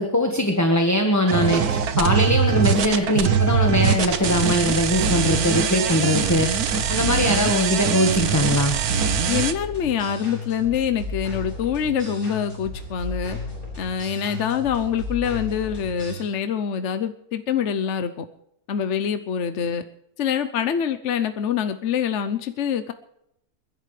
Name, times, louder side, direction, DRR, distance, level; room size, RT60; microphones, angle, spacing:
voice 1, 0.0-6.5 6.9-8.8, left 1 dB, 10° left, 3 dB, 1.2 m, -21 dB
sound 1, 1.3-9.5, right 7 dB, 70° right, 1.4 m, -22 dB
sound 2, 3.4-16.2, left 2 dB, 30° left, 8.2 m, -34 dB
voice 2, 9.3-13.4 13.8-18.2 18.7-19.8 20.2-22.9, left 8 dB, 55° left, 9 dB, 0.9 m, -25 dB
29.0 x 11.0 x 3.3 m, 0.78 s
omnidirectional pair, 1.7 m